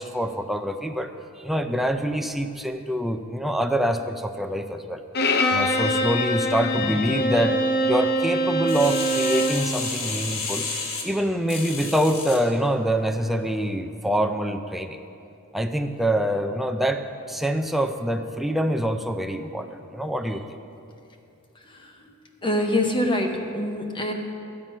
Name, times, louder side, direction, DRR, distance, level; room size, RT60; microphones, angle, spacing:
voice 1, 0.0-5.0 5.5-7.6 7.9-10.7 11.0-15.0 15.5-20.4, equal, ahead, 6 dB, 0.4 m, -25 dB
Bowed string instrument, 5.1-9.6, equal, 50° left, 0.6 m, -23 dB
sound 1, 8.7-12.4 13.0-13.1, left 4 dB, 65° left, 1.3 m, -31 dB
voice 2, 21.5-22.2 22.4-24.1, left 1 dB, 25° left, 3 dB, 0.9 m, -25 dB
11.5 x 7.5 x 5.4 m, 2.6 s
head